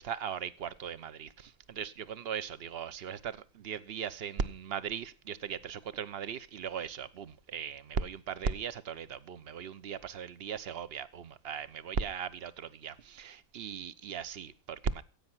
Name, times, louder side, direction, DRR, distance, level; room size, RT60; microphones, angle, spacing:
voice 1, 0.0-15.0, right 7 dB, 45° right, 1.0 m, -38 dB
16.0 x 8.7 x 6.1 m
omnidirectional pair, 1.6 m